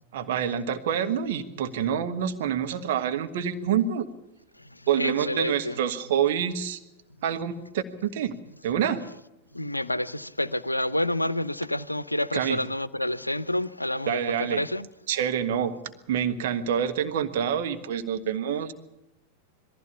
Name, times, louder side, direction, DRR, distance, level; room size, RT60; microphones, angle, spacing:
voice 1, 0.1-4.1 4.9-6.8 7.2-8.3 8.6-9.0 12.3-12.6 14.1-14.6 15.1-15.7 16.1-18.7, right 8 dB, 55° right, 1.5 m, -27 dB
voice 2, 5.0-5.8 9.5-14.2 14.5-14.9, left 1 dB, 85° left, 0.7 m, -28 dB
21.5 x 15.5 x 8.4 m
figure-of-eight pair, 90°, 0 cm